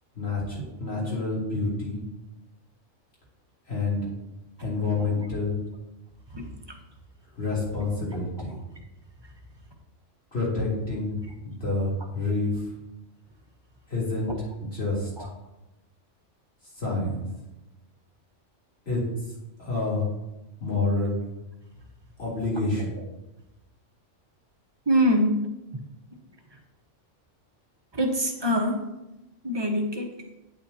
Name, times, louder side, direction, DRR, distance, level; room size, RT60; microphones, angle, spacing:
voice 1, 0.2-2.0 3.7-4.1 4.6-5.6 7.3-8.6 10.3-12.8 13.9-14.3 14.7-15.1 16.7-17.2 18.9-19.0 19.3-20.1 20.6-21.2 22.2-22.9, left 3 dB, 55° left, -7 dB, 3.6 m, -28 dB
voice 2, 24.9-25.3 27.9-28.8 29.4-30.1, equal, 20° right, 2 dB, 1.1 m, -24 dB
9.0 x 8.6 x 2.8 m, 0.94 s
omnidirectional pair, 1.3 m